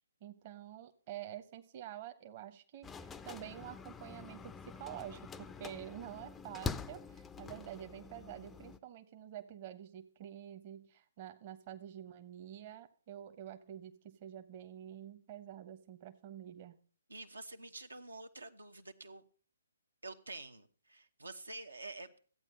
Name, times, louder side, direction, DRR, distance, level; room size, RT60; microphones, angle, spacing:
voice 1, 0.2-16.8, right 11 dB, 35° right, 0.9 m, -48 dB
sound 1, 2.8-8.8, left 5 dB, 10° left, 0.5 m, -45 dB
voice 2, 17.1-19.2 20.0-22.2, right 2 dB, 85° right, 1.1 m, -48 dB
14.0 x 8.7 x 5.3 m
figure-of-eight pair, 130°, 0 cm